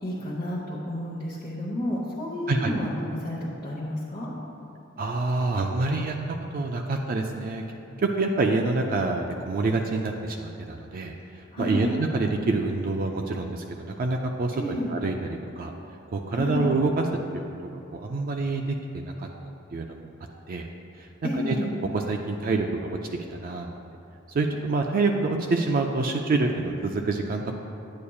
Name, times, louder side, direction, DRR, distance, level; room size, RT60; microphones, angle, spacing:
voice 1, 0.0-4.3 11.5-11.9 14.5-14.9 16.3-16.7 21.2-21.7, left 1 dB, 30° left, -8 dB, 1.0 m, -31 dB
voice 2, 5.0-6.2 6.5-7.6 8.0-11.1 11.6-15.7 16.1-17.0 17.3-17.4 17.9-18.8 19.1-19.3 19.7-20.0 20.5-20.7 21.0-21.6 21.9-23.0 23.3-23.8 24.3-27.6, right 3 dB, 45° right, 3 dB, 0.4 m, -26 dB
9.6 x 8.4 x 2.3 m, 2.7 s
head